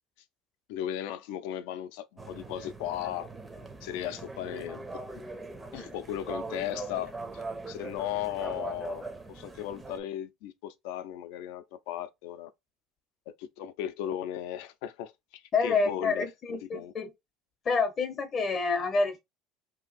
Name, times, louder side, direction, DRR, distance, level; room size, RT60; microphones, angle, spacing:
voice 1, 0.7-3.3 3.8-5.0 5.7-12.5 13.3-16.9, left 11 dB, 80° left, 0.5 m, -36 dB
sound 1, 2.2-10.0, right 2 dB, 15° right, 0.5 m, -41 dB
voice 2, 15.5-17.1 17.6-19.2, left 4 dB, 35° left, 0.6 m, -28 dB
2.8 x 2.6 x 3.9 m
cardioid pair, 135°, 0 cm